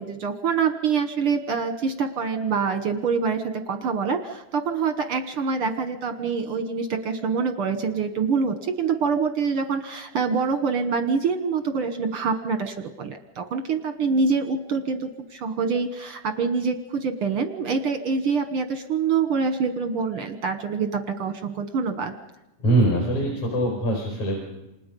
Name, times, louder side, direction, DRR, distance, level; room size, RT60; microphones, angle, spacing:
voice 1, 0.0-22.1, right 5 dB, 65° right, 8 dB, 1.4 m, -25 dB
voice 2, 22.6-24.4, right 1 dB, 55° left, 0 dB, 5.9 m, -22 dB
27.5 x 27.5 x 5.3 m, 0.94 s
omnidirectional pair, 3.9 m